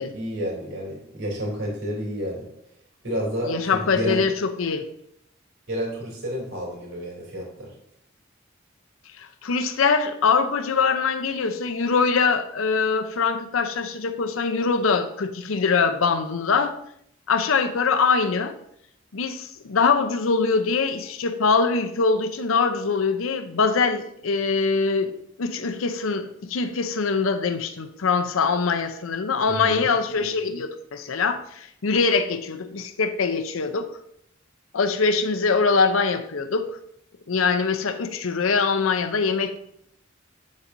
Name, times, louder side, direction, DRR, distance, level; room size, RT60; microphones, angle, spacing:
voice 1, 0.0-2.4 3.0-4.3 5.7-7.7 29.5-29.9, equal, 70° right, -3 dB, 3.1 m, -30 dB
voice 2, 3.5-4.9 9.2-16.7 17.3-18.5 19.1-25.1 25.4-33.9 34.7-36.7 37.3-39.6, left 5 dB, 85° left, 8 dB, 0.6 m, -23 dB
8.5 x 7.3 x 2.6 m, 0.73 s
head